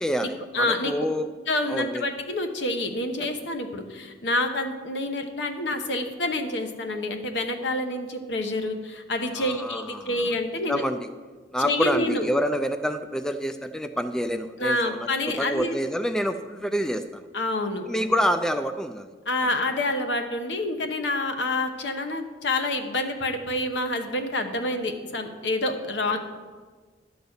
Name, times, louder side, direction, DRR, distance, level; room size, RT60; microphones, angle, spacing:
voice 1, 0.0-1.3 1.7-2.1 9.4-10.3 10.7-11.1 11.5-17.3 17.9-19.1, equal, 5° left, 8 dB, 0.3 m, -27 dB
voice 2, 0.5-0.9 1.5-10.8 11.6-12.3 14.6-15.8 17.3-17.8 19.3-26.2, left 2 dB, 70° left, 6 dB, 1.0 m, -27 dB
11.5 x 4.1 x 7.9 m, 1.4 s
head